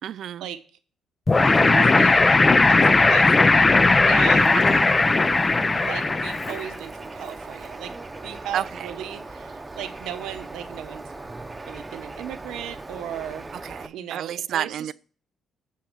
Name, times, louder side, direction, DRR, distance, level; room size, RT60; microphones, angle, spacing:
voice 1, 0.0-0.5 4.5-4.9 8.5-8.9 13.6-14.9, right 10 dB, 70° right, 0.3 m, -30 dB
sound 1, 1.3-6.7, left 3 dB, 25° left, 0.5 m, -17 dB
voice 2, 1.3-2.2 2.5-4.6 5.8-7.9 8.2-11.0 11.7-13.5 13.9-14.9, right 10 dB, 90° right, 1.0 m, -36 dB
Bird, 4.4-13.9, right 2 dB, 20° right, 0.9 m, -38 dB
9.4 x 4.2 x 6.7 m
cardioid pair, 90°, 0 cm